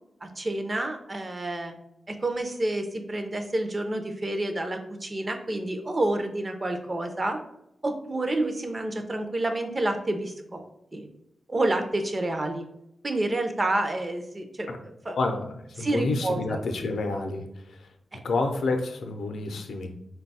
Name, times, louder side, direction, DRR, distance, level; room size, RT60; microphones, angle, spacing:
voice 1, 0.2-1.7 2.1-7.4 7.8-10.6 10.9-11.1 11.5-12.7 13.0-14.7 15.0-15.2 15.8-16.6, right 2 dB, 25° right, 5 dB, 0.4 m, -29 dB
voice 2, 15.1-15.5 15.8-17.5 18.2-19.9, left 3 dB, 75° left, 5 dB, 0.5 m, -28 dB
4.4 x 2.2 x 4.0 m, 0.80 s
wide cardioid pair, 180°, 0 cm